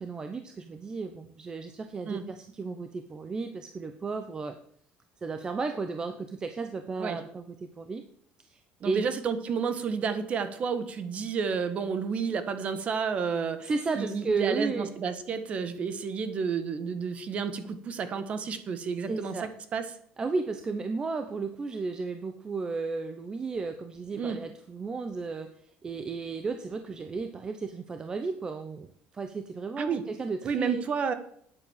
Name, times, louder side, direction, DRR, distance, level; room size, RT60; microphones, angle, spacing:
voice 1, 0.0-4.5 5.2-8.0 8.4-9.1 13.6-14.9 19.1-19.5 20.2-25.5 25.8-30.8, right 4 dB, 20° right, 8 dB, 0.9 m, -34 dB
voice 2, 8.8-13.7 14.0-19.3 19.7-19.8 24.2-24.4 29.8-30.0 30.4-31.1, right 6 dB, 35° right, 10 dB, 1.6 m, -31 dB
9.9 x 9.2 x 7.4 m, 0.63 s
cardioid pair, 145°, 4 cm